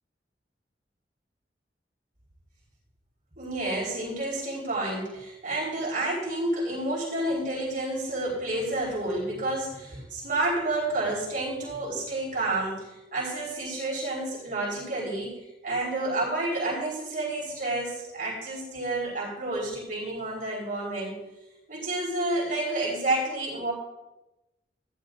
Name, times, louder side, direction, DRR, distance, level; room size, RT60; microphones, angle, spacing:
voice 1, 3.4-15.3 15.6-21.2 21.7-23.7, right 2 dB, 50° right, -5 dB, 4.2 m, -30 dB
15.5 x 11.0 x 2.6 m, 0.97 s
head